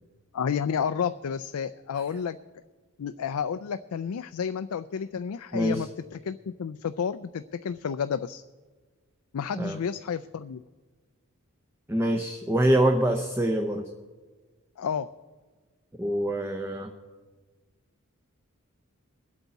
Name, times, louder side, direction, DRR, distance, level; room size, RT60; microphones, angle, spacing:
voice 1, 0.3-2.4 3.0-8.4 9.3-10.6 14.8-15.1, left 7 dB, 90° left, 11 dB, 0.4 m, -31 dB
voice 2, 5.5-5.8 9.5-9.8 11.9-13.9 16.0-16.9, right 1 dB, 10° right, 3 dB, 0.7 m, -25 dB
22.5 x 8.2 x 4.0 m, 1.4 s
head